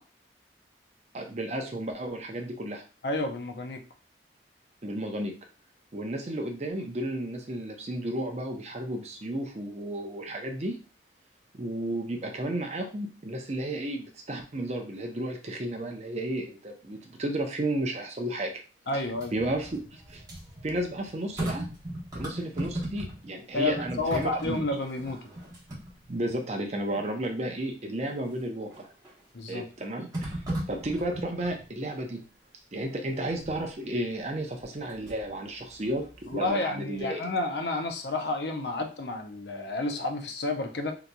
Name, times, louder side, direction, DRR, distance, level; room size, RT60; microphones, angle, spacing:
voice 1, 1.1-2.8 4.8-5.3 5.9-10.8 11.5-18.5 19.3-20.2 20.6-21.7 22.1-24.6 26.1-28.9 29.5-30.3 30.7-32.2 32.7-37.2, right 1 dB, 35° right, 3 dB, 0.6 m, -33 dB
voice 2, 3.0-3.8 18.9-19.3 23.5-25.2 29.3-29.7 36.3-40.9, left 2 dB, 70° left, 4 dB, 0.6 m, -30 dB
sound 1, 19.0-23.4 23.6-26.4 27.0-27.1 28.7-29.2 30.1-31.6 33.3-33.7 34.6-35.3 35.7-36.7 37.0-37.1, right 1 dB, 20° right, 1.0 m, -37 dB
3.8 x 2.9 x 2.2 m, 0.36 s
head